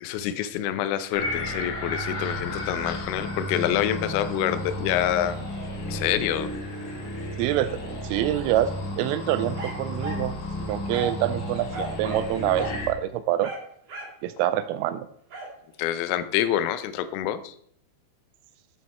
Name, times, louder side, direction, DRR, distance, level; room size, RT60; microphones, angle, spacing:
voice 1, 0.0-5.4 5.9-6.5 15.8-17.5, left 11 dB, 80° left, 11 dB, 3.2 m, -27 dB
sound 1, 1.1-12.9, left 1 dB, 50° left, 3.3 m, -33 dB
voice 2, 7.4-10.4 10.6-13.5 14.2-15.1, right 12 dB, 85° right, 12 dB, 3.0 m, -26 dB
sound 2, 9.5-10.3 10.9-11.2 11.7-12.3 12.5-12.8 13.4-14.2 15.3-15.5, right 2 dB, 40° right, 2.6 m, -35 dB
11.5 x 7.9 x 4.2 m, 0.63 s
omnidirectional pair, 6.0 m